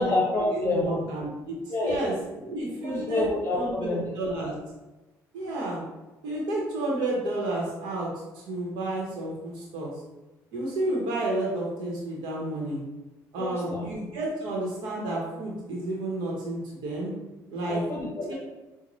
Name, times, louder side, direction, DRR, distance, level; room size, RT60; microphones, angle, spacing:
voice 1, 0.0-1.0 1.7-2.0 2.8-4.0 4.3-4.4 13.4-13.9 17.7-18.3, left 2 dB, 35° left, -3 dB, 0.8 m, -28 dB
voice 2, 0.5-1.5 1.8-2.1 2.4-3.2 3.5-4.5 5.3-5.8 6.2-8.1 8.3-9.9 10.5-12.8 13.3-17.1 17.5-17.8 18.3-18.4, right 2 dB, 80° right, -3 dB, 0.9 m, -31 dB
5.1 x 2.1 x 3.0 m, 1.1 s
cardioid pair, 90°, 7 cm